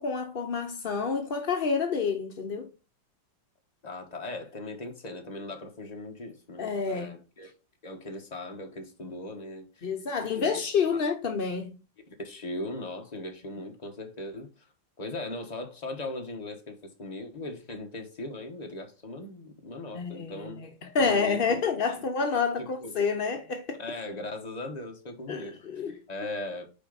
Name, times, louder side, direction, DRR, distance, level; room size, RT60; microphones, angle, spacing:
voice 1, 0.0-2.7 6.6-7.1 9.8-11.7 19.9-23.8 25.3-26.0, left 5 dB, 65° left, 0.5 m, -28 dB
voice 2, 3.8-7.5 7.8-9.9 10.2-10.6 12.1-14.7 15.0-20.6 21.0-21.4 21.9-22.0 22.8-22.9 23.8-26.7, left 2 dB, 25° left, 1.0 m, -39 dB
6.8 x 4.5 x 3.9 m
omnidirectional pair, 2.0 m